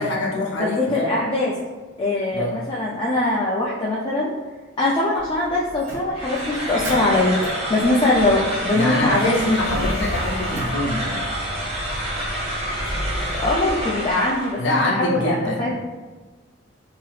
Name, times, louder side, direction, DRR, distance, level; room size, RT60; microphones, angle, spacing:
voice 1, 0.0-1.2 2.3-2.6 8.7-11.2 14.6-15.7, left 1 dB, 60° left, -2 dB, 0.6 m, -24 dB
voice 2, 0.8-1.5 2.0-4.3 4.8-7.4 7.7-9.4 12.3-12.4 13.4-15.7, left 2 dB, 25° left, -5 dB, 0.3 m, -22 dB
Motor vehicle (road), 5.1-13.5, equal, 55° right, 1.0 m, -34 dB
sound 1, 6.1-14.6, equal, 30° right, 0.6 m, -28 dB
2.8 x 2.4 x 3.1 m, 1.3 s
head